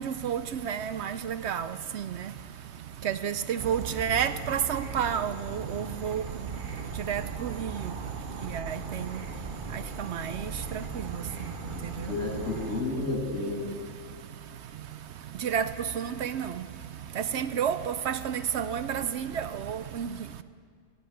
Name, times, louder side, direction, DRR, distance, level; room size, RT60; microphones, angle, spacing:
voice 1, 0.0-12.1 13.9-20.4, right 8 dB, 65° right, 12 dB, 0.7 m, -32 dB
Insect / Frog, 3.6-12.8, right 4 dB, 40° right, 1.0 m, -38 dB
voice 2, 11.6-13.6, left 3 dB, 60° left, 0 dB, 3.0 m, -32 dB
16.0 x 8.6 x 8.8 m, 2.1 s
omnidirectional pair, 1.5 m